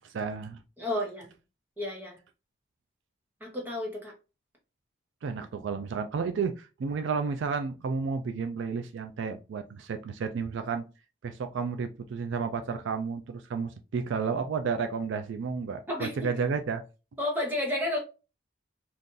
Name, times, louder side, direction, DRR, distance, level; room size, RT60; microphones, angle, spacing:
voice 1, 0.1-0.6 5.2-10.8 11.2-16.8, right 5 dB, 70° right, 0.3 m, -32 dB
voice 2, 0.8-1.3 1.8-2.2 3.4-4.1 15.9-16.1 17.2-18.0, left 1 dB, 10° right, 0.9 m, -31 dB
2.6 x 2.5 x 3.7 m
head